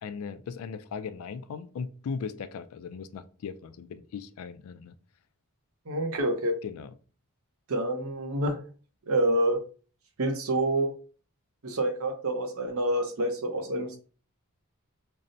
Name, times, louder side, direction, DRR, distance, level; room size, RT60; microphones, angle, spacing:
voice 1, 0.0-4.9 6.6-6.9, left 5 dB, 75° left, 0.3 m, -38 dB
voice 2, 5.9-6.6 7.7-8.6 9.1-9.6 10.2-10.9 11.6-14.0, right 1 dB, 75° right, 0.7 m, -27 dB
5.4 x 2.0 x 2.5 m
head